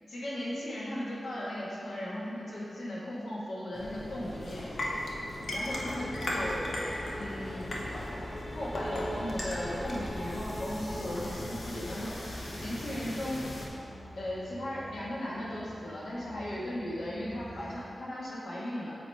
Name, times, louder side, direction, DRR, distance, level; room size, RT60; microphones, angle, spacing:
voice 1, 0.1-4.7 5.5-6.7 7.2-7.8 8.5-12.3 12.6-13.4 14.1-18.9, left 1 dB, 85° left, -7 dB, 1.4 m, -37 dB
sound 1, 3.7-13.7, left 1 dB, 70° left, 0.9 m, -37 dB
sound 2, 5.6-17.8, equal, 40° left, 1.0 m, -44 dB
7.9 x 3.0 x 4.3 m, 2.6 s
wide cardioid pair, 95°, 0 cm